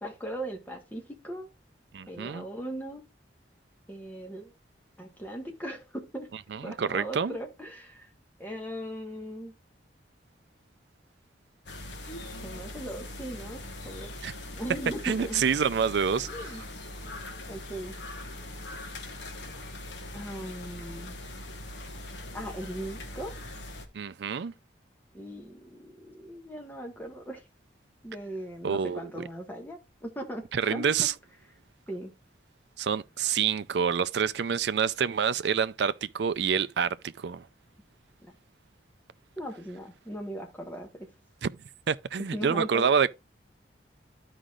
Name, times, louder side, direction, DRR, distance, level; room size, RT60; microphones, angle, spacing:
voice 1, 0.0-1.5 2.1-3.1 3.9-4.5 5.0-6.3 6.6-8.1 8.4-9.5 12.4-14.1 14.6-15.4 16.3-16.6 17.5-18.0 20.1-21.2 22.3-23.4 25.1-27.4 28.0-31.1 31.9-32.1 39.4-41.1 42.3-42.9, right 1 dB, 10° left, 1.3 m, -39 dB
voice 2, 1.9-2.5 6.5-7.4 14.2-14.3 15.0-16.5 23.9-24.5 28.6-29.2 30.5-31.1 32.8-37.5 41.4-41.5 41.9-43.1, right 6 dB, 65° right, 0.4 m, -27 dB
sound 1, 11.7-23.9, left 1 dB, 70° left, 1.2 m, -41 dB
13.0 x 5.0 x 2.4 m
head